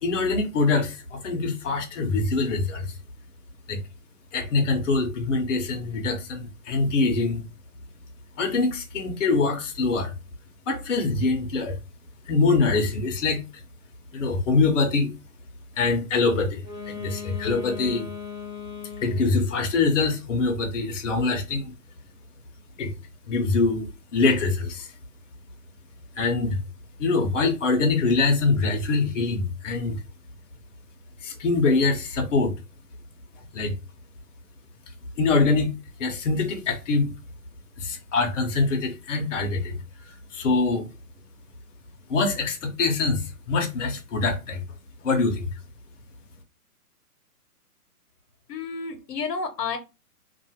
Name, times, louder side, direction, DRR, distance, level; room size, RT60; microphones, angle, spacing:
voice 1, 0.0-2.9 3.7-3.8 4.3-7.4 8.4-10.1 10.7-11.8 12.3-13.4 14.1-15.1 15.8-18.1 19.0-21.7 22.8-22.9 23.3-23.9 24.1-24.9 26.1-26.6 27.0-30.0 31.2-32.5 33.5-33.7 35.2-35.7 36.0-37.1 37.8-39.8 40.0-40.9 42.1-44.6 45.0-45.5, left 3 dB, 50° left, 0.7 m, -24 dB
Wind instrument woodwind instrument, 16.5-19.5, left 6 dB, 5° right, 0.9 m, -38 dB
voice 2, 48.5-49.8, left 5 dB, 85° left, 0.9 m, -30 dB
2.4 x 2.3 x 2.8 m
hypercardioid pair, 170°, 47 cm